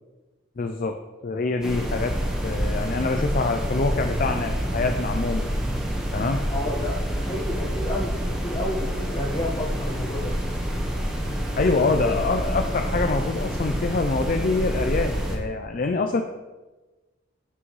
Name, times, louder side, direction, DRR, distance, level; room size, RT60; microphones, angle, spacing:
voice 1, 0.6-2.2 2.4-5.5 6.1-6.4 11.6-16.2, left 3 dB, 45° left, 6 dB, 0.4 m, -25 dB
sound 1, 1.6-15.4, equal, 5° right, 1.4 m, -27 dB
voice 2, 6.5-10.3 11.6-12.4, left 1 dB, 30° left, -1 dB, 1.3 m, -31 dB
11.0 x 6.1 x 3.2 m, 1.2 s
head